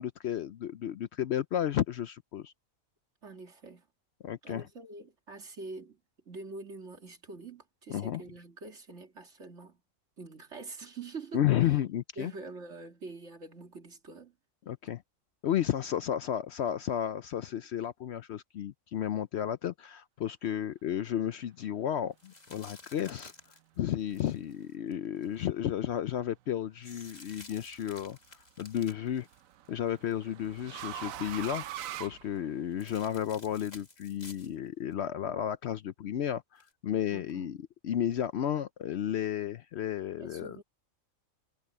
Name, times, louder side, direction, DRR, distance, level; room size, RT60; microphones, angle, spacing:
voice 1, 0.0-2.5 4.2-4.6 7.9-8.2 11.3-12.3 14.7-15.0 15.4-23.3 23.8-28.2 28.6-29.3 29.7-31.7 32.0-37.6 37.8-40.6, left 10 dB, 65° left, 0.8 m, -32 dB
voice 2, 3.2-3.9 4.4-6.0 6.3-9.8 10.2-11.8 12.2-14.3 37.1-37.5 40.2-40.6, right 3 dB, 60° right, 2.6 m, -45 dB
sound 1, 22.2-25.4 26.8-30.1 30.4-30.9 32.8-34.5 34.9-35.0 36.6-36.7, left 2 dB, 30° left, 2.0 m, -52 dB
sound 2, 27.0-27.5 28.9-32.9, right 11 dB, 85° right, 1.1 m, -42 dB
omnidirectional pair, 1.4 m